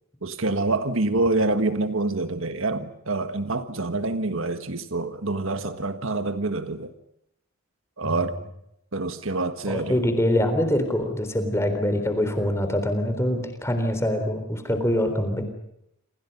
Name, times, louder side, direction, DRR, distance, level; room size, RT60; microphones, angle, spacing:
voice 1, 0.2-6.9 8.0-8.4 8.9-10.0, right 2 dB, 65° right, 1.5 m, -26 dB
voice 2, 9.7-15.4, left 1 dB, 10° left, 3.7 m, -24 dB
29.0 x 27.0 x 5.5 m
head